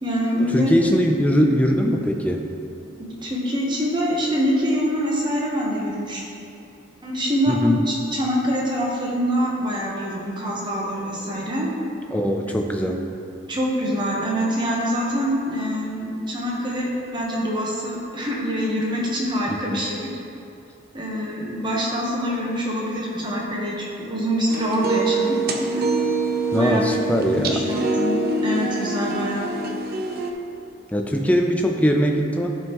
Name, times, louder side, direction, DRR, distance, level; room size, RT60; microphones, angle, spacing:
voice 1, 0.0-0.7 3.0-6.2 7.0-11.7 13.5-20.1 20.9-25.4 25.7-25.8 26.6-27.0 27.3-28.1 28.4-29.5, equal, 25° right, -4 dB, 1.1 m, -25 dB
voice 2, 0.5-2.4 7.5-7.8 12.1-13.1 19.5-19.8 26.5-27.6 30.9-32.5, equal, 5° left, 2 dB, 0.4 m, -21 dB
sound 1, 24.5-30.3, right 3 dB, 50° right, 0.6 m, -24 dB
11.0 x 5.4 x 3.0 m, 2.6 s
head